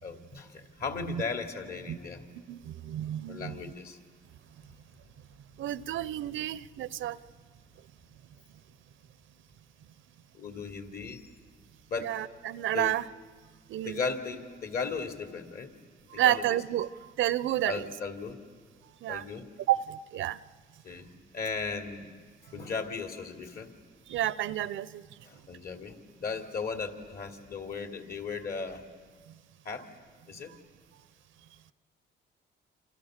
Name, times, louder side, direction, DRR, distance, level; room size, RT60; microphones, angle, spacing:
voice 1, 0.0-2.2 3.3-4.0 10.4-11.2 11.9-12.2 12.7-13.0 13.8-15.7 16.1-16.4 17.7-18.4 19.1-19.4 20.8-22.1 22.5-23.7 25.3-28.8 29.6-29.8 30.3-30.5, left 5 dB, 50° left, 5 dB, 3.1 m, -36 dB
voice 2, 2.5-3.6 5.6-7.2 12.0-13.0 13.7-14.0 16.1-17.8 19.0-19.2 19.7-20.4 24.1-25.1, right 12 dB, 75° right, 18 dB, 0.7 m, -30 dB
28.0 x 27.5 x 6.6 m, 1.5 s
cardioid pair, 90°, 20 cm